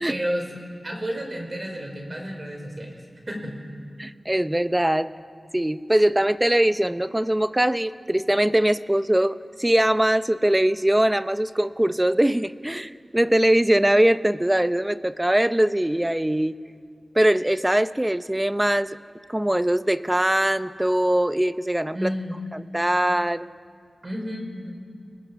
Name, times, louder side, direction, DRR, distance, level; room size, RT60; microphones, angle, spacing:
voice 1, 0.1-3.0 3.3-3.6 21.9-22.4 24.0-24.7, equal, 40° right, 2 dB, 4.9 m, -31 dB
voice 2, 4.0-5.1 5.5-16.5 17.1-19.0 19.3-22.1 22.5-23.5, right 1 dB, 15° right, 13 dB, 0.7 m, -22 dB
29.5 x 19.5 x 6.2 m, 2.2 s
wide cardioid pair, 75°, 0 cm